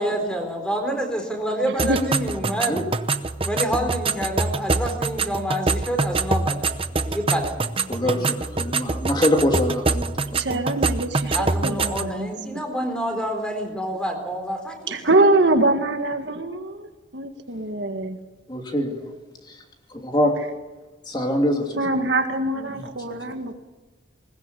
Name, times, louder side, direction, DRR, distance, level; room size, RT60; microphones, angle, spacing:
voice 1, 0.0-2.8 3.4-7.6 8.0-8.4 11.2-14.9, equal, 5° left, 4 dB, 4.2 m, -28 dB
voice 2, 1.6-2.0 10.3-12.3 14.9-18.2 21.8-23.5, right 2 dB, 65° right, 5 dB, 1.9 m, -23 dB
sound 1, 1.8-12.1, right 3 dB, 30° right, 0.8 m, -25 dB
voice 3, 7.9-10.6 18.5-19.1 19.4-19.6 19.9-20.3 21.0-21.8 22.6-23.2, left 1 dB, 25° left, 2 dB, 2.9 m, -24 dB
20.0 x 20.0 x 8.4 m, 1.2 s
head